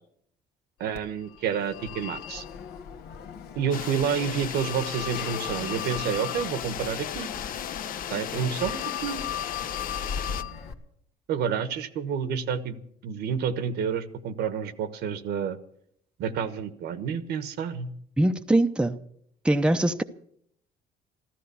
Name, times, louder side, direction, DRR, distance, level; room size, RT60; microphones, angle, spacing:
voice 1, 0.8-2.4 3.5-7.3 8.1-9.2 11.3-12.8 13.0-15.6 16.2-17.9, right 7 dB, 75° right, 12 dB, 1.3 m, -29 dB
Telephone, 0.9-10.7, left 8 dB, 75° left, 1.6 m, -37 dB
sound 1, 3.7-10.4, left 10 dB, 55° left, 0.8 m, -35 dB
voice 2, 18.2-19.0 19.4-20.0, right 1 dB, 5° right, 7 dB, 0.7 m, -22 dB
14.5 x 13.5 x 6.9 m, 0.68 s
cardioid pair, 110°, 17 cm